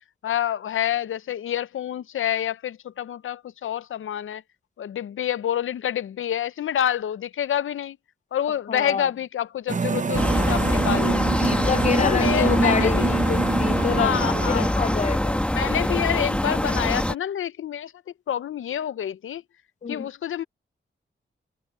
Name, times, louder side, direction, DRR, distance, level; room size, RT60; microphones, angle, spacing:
voice 1, 0.2-4.4 4.8-8.0 8.3-11.3 12.0-13.1 13.8-14.9 15.5-17.9 18.3-19.4 19.9-20.4, left 10 dB, 85° left, 0.5 m, -27 dB
voice 2, 8.7-9.1 11.4-14.2 14.5-15.4 19.8-20.1, left 6 dB, 35° left, 0.6 m, -27 dB
sound 1, 9.7-14.7, right 4 dB, 40° right, 0.8 m, -26 dB
sound 2, 10.1-17.1, left 1 dB, 5° left, 1.3 m, -24 dB
wide cardioid pair, 135°, 20 cm